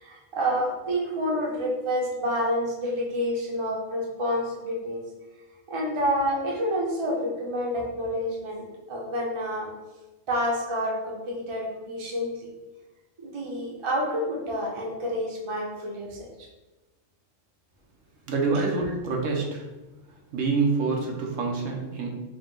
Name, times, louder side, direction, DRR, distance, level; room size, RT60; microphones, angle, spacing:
voice 1, 0.0-5.0 5.7-8.6 8.9-9.7 10.3-12.5 13.2-16.3 18.5-18.9, equal, 30° right, -2 dB, 0.7 m, -28 dB
voice 2, 18.3-19.7 20.3-22.1, right 4 dB, 70° right, 0 dB, 1.1 m, -26 dB
5.0 x 2.2 x 3.7 m, 1.1 s
omnidirectional pair, 1.4 m